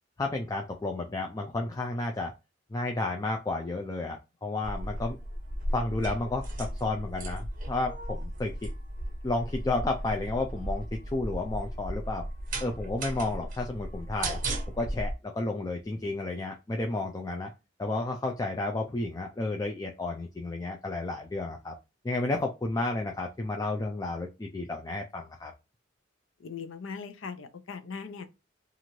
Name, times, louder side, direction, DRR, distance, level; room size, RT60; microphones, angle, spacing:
voice 1, 0.2-2.3 2.7-5.2 5.7-8.7 9.2-10.9 11.1-12.2 12.6-14.4 14.8-17.5 17.8-21.7 22.0-25.5, left 2 dB, 20° left, 0.3 m, -32 dB
sound 1, 4.6-15.1, right 1 dB, 40° right, 0.6 m, -35 dB
voice 2, 26.4-28.3, left 5 dB, 80° left, 0.6 m, -39 dB
3.0 x 2.5 x 2.7 m
head